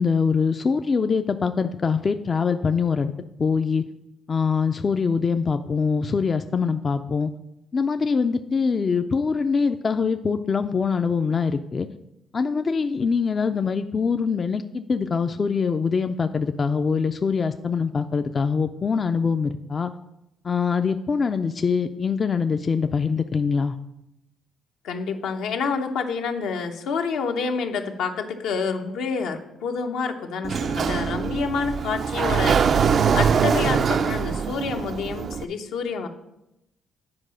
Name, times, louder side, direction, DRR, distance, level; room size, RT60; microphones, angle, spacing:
voice 1, 0.0-3.1 3.4-3.8 4.3-7.3 7.7-11.9 12.3-19.9 20.4-23.8, left 5 dB, 40° left, 8 dB, 0.4 m, -23 dB
voice 2, 24.8-32.8 33.1-36.1, left 5 dB, 85° left, 4 dB, 0.9 m, -28 dB
Sliding door, 30.4-35.4, right 6 dB, 55° right, 0.4 m, -23 dB
8.7 x 4.7 x 6.3 m, 0.88 s
cardioid pair, 90°, 0 cm